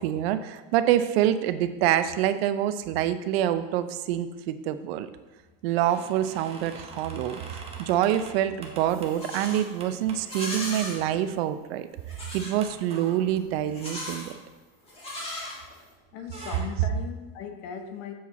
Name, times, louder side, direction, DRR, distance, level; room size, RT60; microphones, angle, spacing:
voice 1, 0.0-5.1 5.6-11.9 12.3-14.3, right 11 dB, 80° right, 11 dB, 0.6 m, -26 dB
sound 1, 5.7-10.3 10.6-10.7 11.1-11.6 11.9-12.0 12.6-15.6 15.9-16.7, right 3 dB, 20° right, 0.8 m, -45 dB
Livestock farm animals working animals, 8.9-9.7 10.2-11.0 12.1-12.6 13.7-14.3 14.9-15.9, left 1 dB, 20° left, 2.1 m, -37 dB
voice 2, 16.1-18.1, left 7 dB, 55° left, 6 dB, 0.9 m, -38 dB
7.4 x 4.8 x 4.1 m, 1.2 s
cardioid pair, 155°, 30 cm